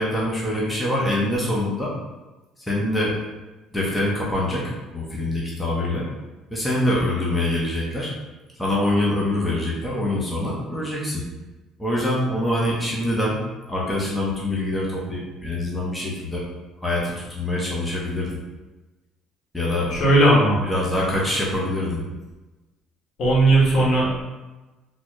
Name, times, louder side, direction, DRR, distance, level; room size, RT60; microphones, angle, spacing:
voice 1, 0.0-1.9 2.7-3.2 3.7-6.1 6.5-8.1 8.6-11.2 11.8-13.4 13.7-16.4 16.8-18.3 19.5-19.9 20.7-22.0, left 1 dB, 10° left, -5 dB, 0.9 m, -24 dB
voice 2, 19.9-20.6 23.2-24.2, right 1 dB, 60° left, -5 dB, 1.3 m, -17 dB
4.0 x 2.4 x 3.1 m, 1.1 s
cardioid pair, 110°, 0 cm